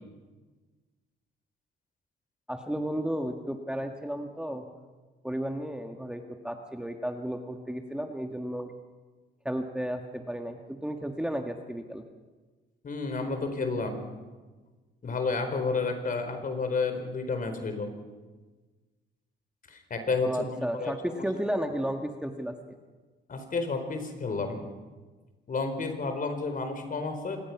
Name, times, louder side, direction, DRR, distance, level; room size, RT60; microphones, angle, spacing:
voice 1, 2.5-4.7 5.2-8.7 9.4-12.1 20.2-22.8, equal, 5° right, 4 dB, 1.6 m, -33 dB
voice 2, 12.8-14.1 15.0-17.9 19.7-20.3 20.8-21.2 23.3-24.6 25.5-27.4, left 4 dB, 45° left, 7 dB, 4.4 m, -31 dB
26.0 x 20.0 x 6.0 m, 1.3 s
cardioid pair, 90°, 20 cm